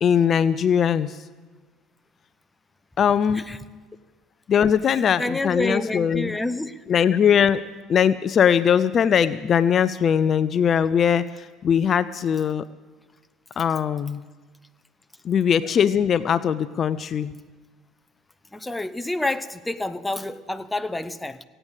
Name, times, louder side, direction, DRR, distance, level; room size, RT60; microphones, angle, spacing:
voice 1, 0.0-1.2 3.0-3.4 4.5-6.4 6.9-7.6 7.9-11.3 11.6-12.6 13.6-14.2 15.2-17.3, left 8 dB, 45° left, 15 dB, 0.4 m, -20 dB
voice 2, 5.2-6.8 13.7-13.8 18.5-21.4, left 2 dB, 10° left, 12 dB, 0.6 m, -28 dB
16.5 x 8.8 x 8.1 m, 1.4 s
supercardioid pair, 90°, 0 cm